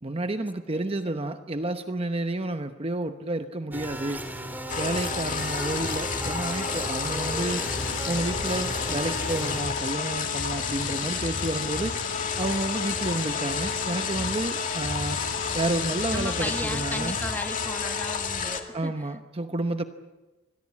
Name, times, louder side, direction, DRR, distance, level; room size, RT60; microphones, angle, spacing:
voice 1, 0.0-4.2 4.8-7.6 8.1-11.9 12.4-15.2 15.5-17.2 18.7-19.8, right 2 dB, 30° right, 8 dB, 0.9 m, -30 dB
voice 2, 0.7-1.3 16.1-18.9, left 1 dB, 10° left, 6 dB, 1.8 m, -35 dB
sound 1, 3.7-9.6, right 1 dB, 10° right, 2.5 m, -36 dB
sound 2, 4.7-18.6, left 5 dB, 40° left, 2.2 m, -30 dB
sound 3, 7.3-16.6, left 9 dB, 65° left, 0.9 m, -38 dB
26.0 x 21.0 x 8.5 m, 1.1 s
head